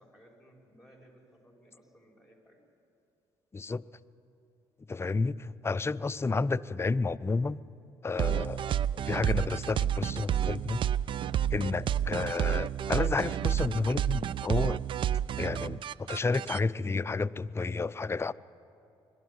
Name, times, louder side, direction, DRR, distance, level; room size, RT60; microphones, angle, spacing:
voice 1, 0.0-2.6, right 1 dB, 5° right, 0 dB, 5.3 m, -57 dB
voice 2, 3.5-3.8 4.9-7.6 8.0-8.6 8.9-10.8 11.5-14.8 15.4-18.3, left 3 dB, 25° left, 15 dB, 0.5 m, -31 dB
sound 1, 8.2-16.6, right 10 dB, 50° right, 0.4 m, -30 dB
22.0 x 12.5 x 9.4 m, 2.7 s
supercardioid pair, 65°, 11 cm